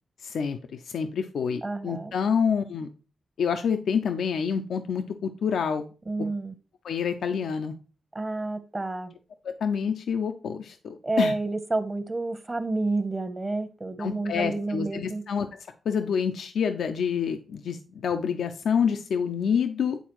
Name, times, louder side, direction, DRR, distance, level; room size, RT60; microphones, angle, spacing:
voice 1, 0.2-2.9 3.4-5.9 6.2-6.3 6.8-7.7 9.4-11.3 14.0-15.6 15.9-20.0, left 6 dB, 80° left, 7 dB, 0.5 m, -27 dB
voice 2, 1.6-2.1 6.1-6.5 8.1-9.1 11.0-15.2, right 2 dB, 30° right, 9 dB, 0.9 m, -29 dB
9.2 x 3.9 x 3.0 m, 0.36 s
cardioid pair, 60°, 0 cm